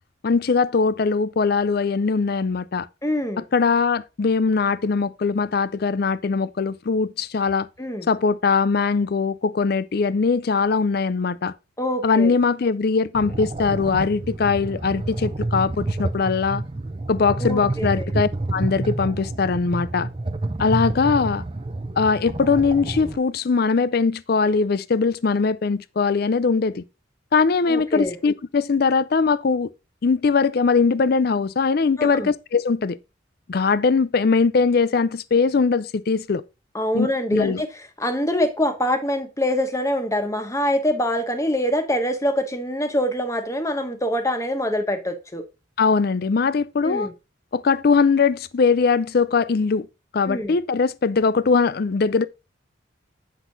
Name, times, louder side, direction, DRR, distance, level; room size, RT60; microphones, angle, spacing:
voice 1, 0.2-2.9 3.5-7.7 8.1-11.5 12.0-16.6 17.1-20.1 20.6-21.4 22.0-26.8 27.3-29.7 30.0-33.0 33.5-36.4 36.9-37.6 45.8-47.1 47.5-49.9 50.1-52.2, left 4 dB, 50° left, 0.4 m, -21 dB
voice 2, 3.0-3.4 7.8-8.1 11.8-12.3 17.4-18.1 27.7-28.2 32.0-32.3 36.7-45.4 46.8-47.1 50.3-50.6, left 1 dB, 15° left, 1.0 m, -24 dB
sound 1, 13.1-23.2, right 2 dB, 25° right, 0.5 m, -29 dB
8.1 x 5.8 x 3.9 m
head